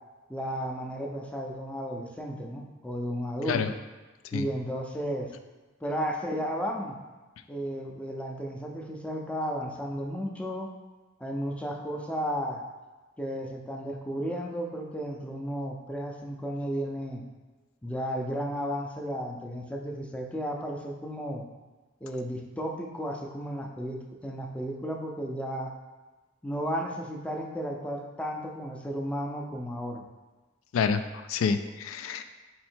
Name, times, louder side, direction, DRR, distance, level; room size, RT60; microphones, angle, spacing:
voice 1, 0.3-3.8 4.3-5.3 5.8-6.9 7.5-10.7 11.2-12.6 13.2-17.2 17.8-21.4 22.0-25.7 26.4-30.0, equal, 5° left, 0 dB, 0.4 m, -33 dB
voice 2, 30.7-32.2, left 6 dB, 75° left, 10 dB, 0.3 m, -28 dB
4.3 x 2.8 x 4.4 m, 1.2 s
head